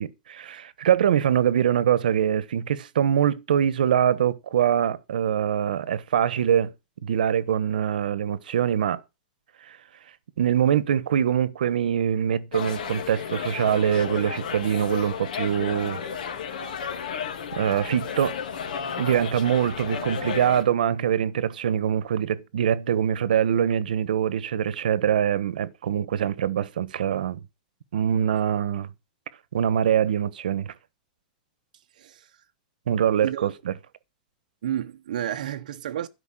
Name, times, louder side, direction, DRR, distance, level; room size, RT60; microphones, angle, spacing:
voice 1, 0.0-6.7 7.0-9.0 9.7-9.8 10.4-16.0 16.6-16.7 17.5-18.4 19.0-27.4 27.9-28.9 29.5-30.7 32.9-33.5, right 9 dB, 90° right, 1.2 m, -23 dB
sound 1, 12.5-20.6, left 7 dB, 70° left, 2.9 m, -33 dB
voice 2, 31.9-32.4 33.2-33.5 34.6-36.1, right 11 dB, 65° right, 1.0 m, -31 dB
13.0 x 5.4 x 9.2 m
supercardioid pair, 180°, 5 cm